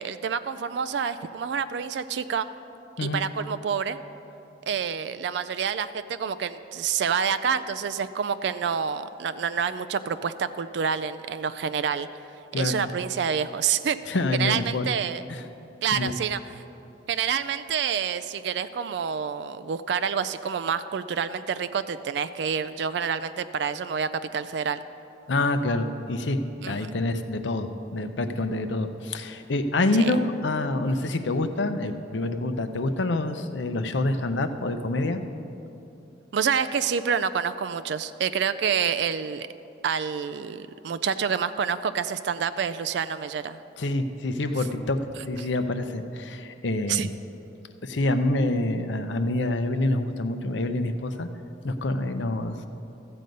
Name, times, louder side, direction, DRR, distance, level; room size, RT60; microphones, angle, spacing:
voice 1, 0.0-2.5 3.0-4.0 4.7-12.1 12.5-14.0 14.4-15.2 15.8-16.4 17.1-24.8 26.6-26.9 30.0-30.1 36.3-39.5 39.8-43.6 46.9-47.1, right 7 dB, 65° right, 13 dB, 0.3 m, -28 dB
voice 2, 12.5-12.9 14.1-14.9 15.3-15.4 15.9-16.1 25.3-26.4 26.6-35.2 43.8-45.0 45.3-47.1 47.8-51.3 51.6-52.7, left 2 dB, 75° left, 9 dB, 0.7 m, -27 dB
14.0 x 7.8 x 5.3 m, 2.8 s
head